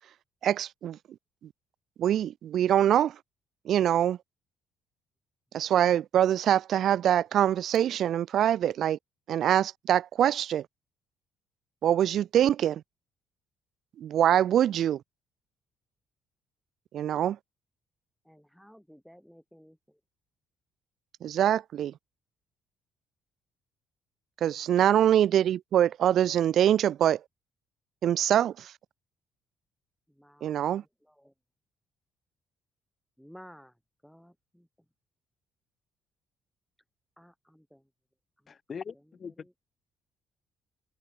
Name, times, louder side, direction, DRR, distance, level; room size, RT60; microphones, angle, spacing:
voice 1, 0.4-1.0 2.0-3.1 3.7-4.2 5.5-9.0 9.3-10.6 11.8-12.8 14.0-15.0 16.9-17.4 21.2-21.9 24.4-27.2 28.0-28.5 30.4-30.8, right 10 dB, 65° right, 0.3 m, -24 dB
voice 2, 18.2-20.0 24.6-24.8 30.1-31.3 33.2-33.7 34.0-34.7 37.2-37.9 38.4-38.6 39.3-39.6, equal, ahead, 2.1 m, -55 dB
voice 3, 38.5-39.6, left 6 dB, 40° left, 2.1 m, -41 dB
cardioid pair, 95°, 0 cm